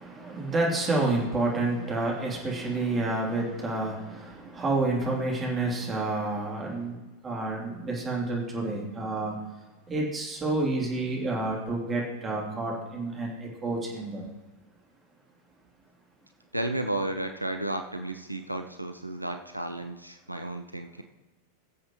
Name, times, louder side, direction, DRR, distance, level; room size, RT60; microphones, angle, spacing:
voice 1, 0.0-9.4 9.9-14.3, right 2 dB, 20° right, -2 dB, 3.0 m, -29 dB
voice 2, 16.5-21.0, right 1 dB, 90° right, 6 dB, 0.7 m, -33 dB
22.0 x 7.5 x 3.0 m, 1.2 s
figure-of-eight pair, 90°, 0 cm